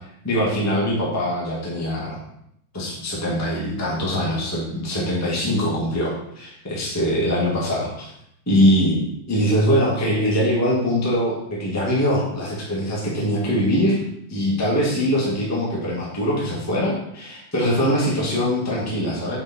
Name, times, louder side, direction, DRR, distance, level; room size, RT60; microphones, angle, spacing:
voice 1, 0.2-2.2 2.7-8.1 8.4-9.0 9.3-14.0 14.3-19.4, equal, 5° left, -5 dB, 1.4 m, -22 dB
7.7 x 5.1 x 4.4 m, 0.75 s
omnidirectional pair, 3.6 m